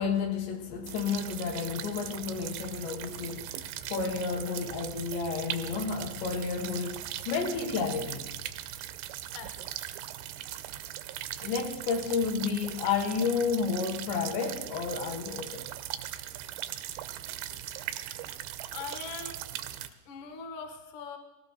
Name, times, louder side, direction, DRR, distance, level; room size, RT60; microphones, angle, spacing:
voice 1, 0.0-8.3 11.4-15.7, left 5 dB, 80° left, 2 dB, 3.6 m, -31 dB
sound 1, 0.9-19.9, right 12 dB, 85° right, 2.1 m, -40 dB
voice 2, 9.3-9.7 18.7-19.4 20.1-21.2, left 5 dB, 60° left, 4 dB, 2.5 m, -41 dB
19.5 x 16.5 x 4.1 m, 1.0 s
omnidirectional pair, 5.1 m